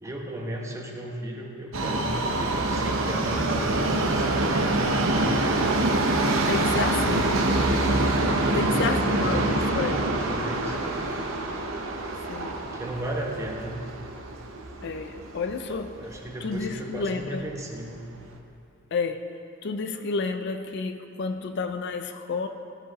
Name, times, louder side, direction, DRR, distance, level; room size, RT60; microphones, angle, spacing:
voice 1, 0.0-5.5 8.4-11.0 12.6-13.8 16.0-18.1, right 1 dB, 15° right, 0 dB, 1.0 m, -35 dB
Subway metro underground, 1.7-15.8 16.2-16.3 17.1-17.2 17.5-17.6 18.2-18.3, right 2 dB, 60° right, 0.8 m, -25 dB
voice 2, 6.4-7.3 8.6-9.9 12.3-12.6 14.8-16.0 16.4-17.5 18.9-19.3 19.6-22.5, left 4 dB, 50° left, 7 dB, 0.4 m, -30 dB
16.0 x 6.5 x 4.2 m, 2.7 s
head